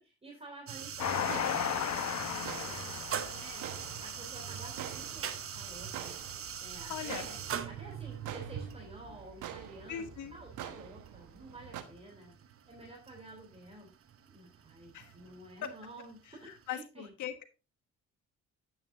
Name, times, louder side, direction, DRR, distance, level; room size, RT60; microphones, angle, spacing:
voice 1, 0.0-3.0 3.3-6.2 6.6-7.4 7.6-12.3 12.7-13.9 14.3-16.5 16.8-17.1, right 2 dB, 20° right, 0 dB, 3.6 m, -51 dB
sound 1, 0.7-16.7, right 8 dB, 50° right, 1.0 m, -43 dB
Train, 1.0-4.4 5.0-5.1 5.3-5.4, left 9 dB, 60° left, 1.1 m, -35 dB
sound 2, 1.0-11.8, right 10 dB, 85° right, 1.1 m, -47 dB
voice 2, 6.9-7.3 9.9-10.3 14.9-15.2 15.6-15.7 16.4-17.5, left 9 dB, 80° left, 9 dB, 1.5 m, -40 dB
9.4 x 9.2 x 2.7 m, 0.29 s
cardioid pair, 90°, 30 cm